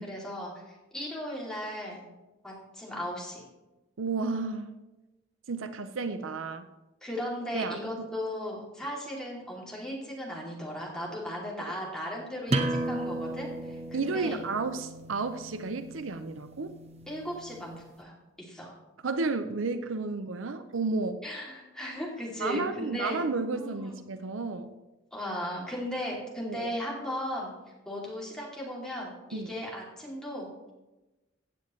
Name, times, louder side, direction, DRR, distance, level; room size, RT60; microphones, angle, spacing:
voice 1, 0.0-2.0 2.4-3.5 7.0-14.4 17.1-18.1 18.4-18.7 21.2-23.2 23.5-24.0 25.1-27.5 27.8-30.7, equal, 5° left, -4 dB, 2.7 m, -37 dB
voice 2, 4.0-4.7 5.5-6.7 7.5-8.1 13.9-16.7 19.0-21.2 22.4-24.7 26.4-26.7 29.3-29.5, right 3 dB, 85° right, 10 dB, 0.6 m, -32 dB
sound 1, 12.5-17.9, right 2 dB, 35° right, 0.9 m, -35 dB
15.5 x 8.3 x 3.2 m, 1.1 s
head